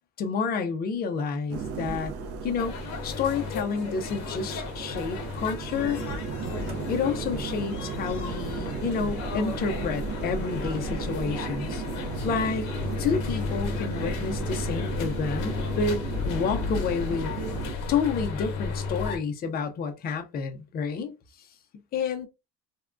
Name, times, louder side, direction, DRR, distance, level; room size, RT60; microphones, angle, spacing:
voice 1, 0.2-2.1 2.4-2.7 3.0-6.0 6.9-11.8 12.2-12.7 13.0-17.3 17.9-21.1 21.9-22.3, left 5 dB, 30° left, 0.4 m, -29 dB
sound 1, 1.5-17.7, right 5 dB, 45° right, 0.5 m, -35 dB
sound 2, 2.6-19.2, left 5 dB, 60° left, 0.8 m, -34 dB
3.4 x 2.2 x 2.4 m
cardioid pair, 175°, 32 cm